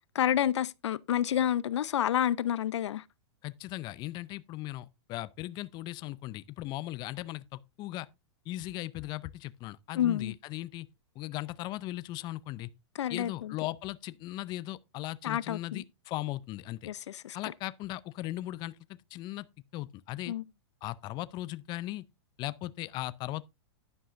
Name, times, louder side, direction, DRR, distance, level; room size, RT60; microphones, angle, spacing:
voice 1, 0.1-3.0 10.0-10.3 13.0-13.5 15.2-15.8 16.8-17.4 20.3-20.4, left 10 dB, 80° left, 0.6 m, -29 dB
voice 2, 3.4-8.1 8.5-10.9 11.2-12.7 13.1-16.9 17.3-19.5 19.7-20.4 20.8-22.0 22.4-23.4, left 16 dB, 30° left, 0.5 m, -38 dB
11.0 x 10.5 x 2.5 m
hypercardioid pair, 135°, 15 cm